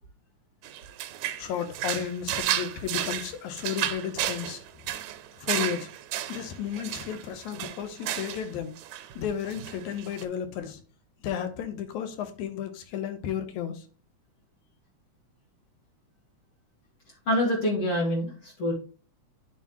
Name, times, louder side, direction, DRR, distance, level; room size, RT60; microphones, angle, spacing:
sound 1, 0.6-8.5 8.8-9.2 9.5-10.2, right 12 dB, 80° right, 2.0 m, -33 dB
voice 1, 1.4-4.6 5.4-5.9 6.3-8.7 9.2-10.8 11.2-13.8, left 9 dB, 75° left, 2.2 m, -33 dB
voice 2, 17.3-18.7, left 1 dB, 50° left, 2.4 m, -26 dB
11.0 x 4.2 x 3.0 m
omnidirectional pair, 3.4 m